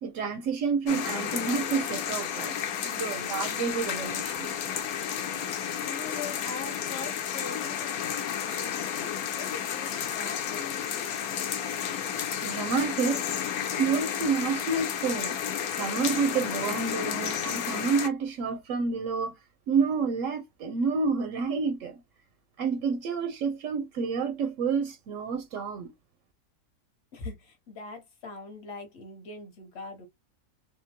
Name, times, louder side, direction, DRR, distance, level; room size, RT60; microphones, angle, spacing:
voice 1, 0.0-4.5 12.4-13.3 13.8-15.4 15.8-19.4 19.7-22.0 22.6-25.9, right 5 dB, 70° right, 0.8 m, -29 dB
sound 1, 0.9-18.1, left 8 dB, 70° left, 1.1 m, -32 dB
voice 2, 5.4-11.1 27.1-30.0, left 4 dB, 45° left, 1.2 m, -42 dB
3.6 x 2.3 x 2.7 m
omnidirectional pair, 1.6 m